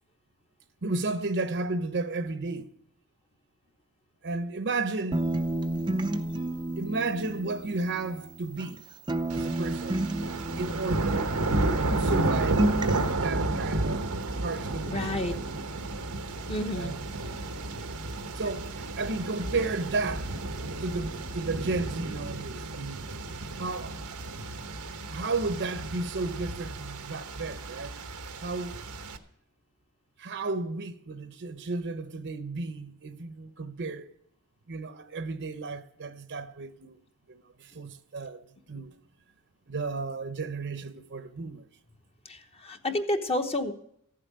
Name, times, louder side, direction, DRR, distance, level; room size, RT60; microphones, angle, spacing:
voice 1, 0.8-2.7 4.2-5.3 6.8-8.8 9.3-10.1 10.6-11.4 11.9-12.7 13.0-14.1 14.4-15.4 16.7-17.0 18.3-20.3 20.8-23.1 23.6-24.0 25.1-28.0 28.4-28.8 30.2-34.1 34.7-37.0 37.3-38.9 39.7-41.6, right 3 dB, 55° right, 0.8 m, -33 dB
sound 1, 5.1-8.8 9.1-11.9 12.1-13.1, right 1 dB, 20° right, 0.6 m, -31 dB
sound 2, 9.3-29.2, right 2 dB, 90° right, 1.1 m, -32 dB
voice 2, 14.9-15.4 16.5-17.0 42.2-43.7, left 1 dB, 25° left, 1.0 m, -30 dB
14.5 x 7.7 x 9.4 m
head